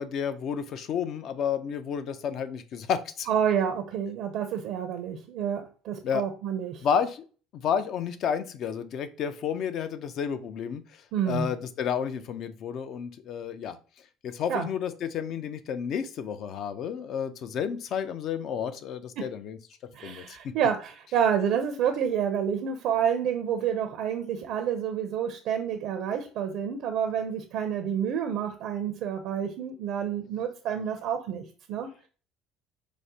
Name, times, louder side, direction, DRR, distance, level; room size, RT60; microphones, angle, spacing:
voice 1, 0.0-3.3 6.0-6.2 6.8-7.2 7.6-10.8 11.3-13.8 14.2-19.6 20.0-20.5, left 7 dB, 55° left, 11 dB, 0.4 m, -31 dB
voice 2, 3.3-6.9 11.1-11.5 14.5-14.7 19.2-19.3 19.9-31.4 31.7-31.9, right 8 dB, 70° right, 6 dB, 0.5 m, -29 dB
4.8 x 2.1 x 2.7 m, 0.38 s
supercardioid pair, 95°, 0 cm